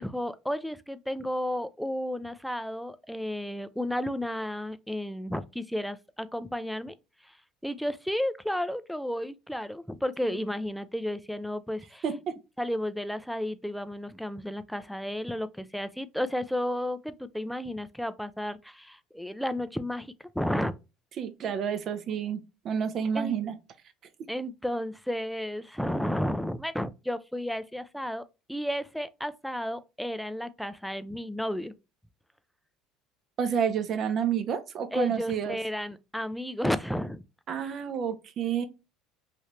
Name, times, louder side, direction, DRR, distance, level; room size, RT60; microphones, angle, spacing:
voice 1, 0.0-6.9 7.2-7.3 7.6-12.0 12.6-20.7 23.1-23.4 24.3-28.2 28.5-31.7 34.9-37.2, left 1 dB, ahead, 0.4 m, -32 dB
voice 2, 21.2-22.4 22.6-23.5 33.4-35.6 37.5-38.6, right 7 dB, 50° right, 0.5 m, -29 dB
3.2 x 2.7 x 3.1 m
hypercardioid pair, 70°, 0 cm